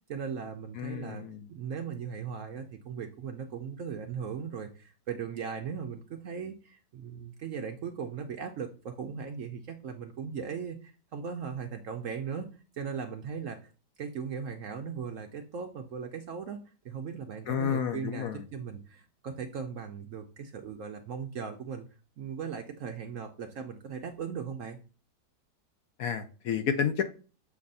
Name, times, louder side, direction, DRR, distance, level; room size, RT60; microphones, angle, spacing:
voice 1, 0.1-12.5 12.7-13.7 14.0-21.9 22.2-24.8, right 6 dB, 70° right, 4 dB, 0.8 m, -38 dB
voice 2, 0.8-1.5 17.5-18.4 26.0-27.0, left 7 dB, 70° left, 8 dB, 0.9 m, -30 dB
7.0 x 2.5 x 5.3 m, 0.36 s
omnidirectional pair, 1.8 m